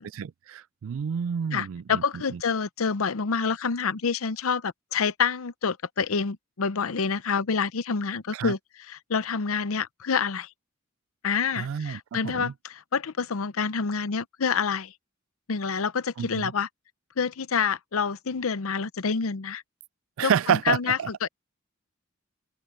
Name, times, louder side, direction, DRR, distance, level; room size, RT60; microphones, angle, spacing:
voice 1, 0.1-2.4 8.3-8.5 11.6-12.5 16.2-16.5 20.2-21.1, right 7 dB, 70° right, 0.3 m, -29 dB
voice 2, 1.5-10.5 11.2-14.9 15.5-16.7 17.2-19.6 20.2-21.3, left 5 dB, 75° left, 0.7 m, -27 dB
head